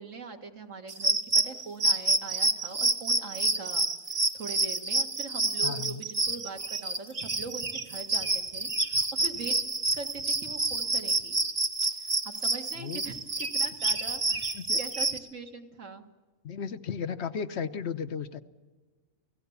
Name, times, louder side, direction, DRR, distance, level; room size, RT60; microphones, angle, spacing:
voice 1, 0.0-9.6 9.8-11.4 11.8-16.0, right 4 dB, 65° right, 5 dB, 2.1 m, -42 dB
sound 1, 0.9-15.2, right 2 dB, 30° right, 1.3 m, -28 dB
voice 2, 5.6-6.0 12.8-13.0 14.5-14.8 16.4-18.4, left 6 dB, 60° left, 12 dB, 1.1 m, -34 dB
29.5 x 17.0 x 7.1 m, 1.4 s
omnidirectional pair, 1.4 m